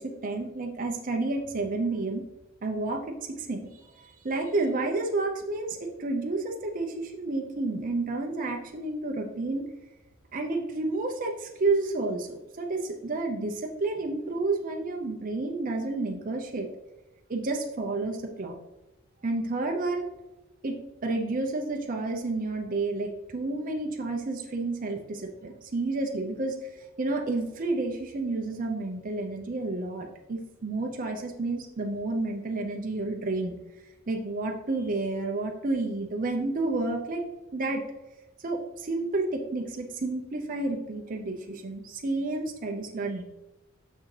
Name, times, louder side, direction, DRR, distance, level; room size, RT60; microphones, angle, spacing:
voice 1, 0.0-2.2 2.6-9.6 10.3-16.7 17.3-18.5 19.2-20.1 20.6-33.5 34.1-37.2 37.5-37.8 38.4-43.2, right 2 dB, 40° right, 2 dB, 0.6 m, -30 dB
6.3 x 6.0 x 3.2 m, 1.0 s
head